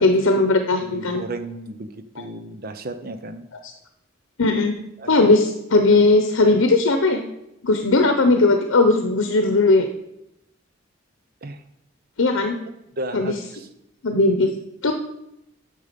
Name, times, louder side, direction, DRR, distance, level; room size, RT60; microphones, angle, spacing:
voice 1, 0.0-1.2 4.4-4.7 5.1-7.2 7.6-9.9 12.2-12.6 13.1-13.3 14.0-14.5 14.8-14.9, left 2 dB, 85° left, 6 dB, 0.9 m, -18 dB
voice 2, 0.8-3.5 5.0-5.1 6.4-6.6 11.4-11.6 13.0-13.7, right 2 dB, 45° right, 9 dB, 0.8 m, -34 dB
10.0 x 7.0 x 5.2 m, 0.84 s
head